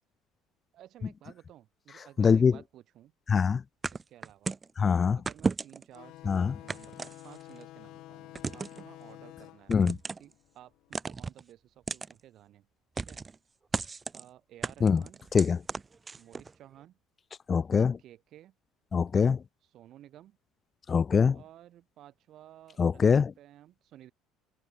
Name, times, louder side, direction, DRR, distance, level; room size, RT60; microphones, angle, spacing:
voice 1, 0.7-3.1 3.9-4.6 5.1-9.8 10.2-12.7 12.9-13.2 14.1-15.2 16.2-17.0 18.0-18.6 19.6-20.4 21.3-24.1, right 12 dB, 50° right, 7.4 m, -54 dB
voice 2, 2.2-2.5 3.3-3.6 4.8-5.2 6.3-6.5 9.7-10.0 14.8-15.0 15.3-15.6 17.5-18.0 18.9-19.4 20.9-21.4 22.8-23.3, left 6 dB, 25° left, 0.5 m, -23 dB
sound 1, 3.8-4.7 5.3-6.0 6.7-7.6 8.3-8.8 9.7-10.3 10.9-11.4 11.9-12.1 13.0-13.4 13.7-14.2 14.6-16.5, right 4 dB, 20° right, 1.4 m, -34 dB
sound 2, 5.9-11.1, left 17 dB, 60° left, 3.5 m, -50 dB
cardioid pair, 150°, 0 cm